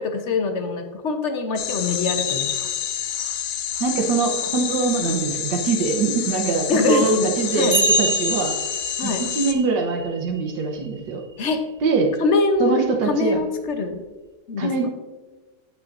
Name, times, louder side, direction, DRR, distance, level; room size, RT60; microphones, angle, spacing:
voice 1, 0.0-2.5 6.7-7.8 9.0-9.2 11.4-11.6 12.2-14.0 14.5-14.9, left 3 dB, 50° left, 6 dB, 1.0 m, -23 dB
sound 1, 1.6-9.5, left 10 dB, 85° left, 1.3 m, -28 dB
sound 2, 2.3-3.9 5.0-5.1 6.6-6.7 7.7-11.8 13.3-13.4, right 2 dB, 55° right, 0.3 m, -28 dB
voice 2, 3.8-8.5 9.0-11.2 11.8-12.1 12.6-13.4 14.6-14.9, right 4 dB, 85° right, 1 dB, 1.7 m, -23 dB
16.5 x 5.9 x 2.6 m, 1.3 s
omnidirectional pair, 1.8 m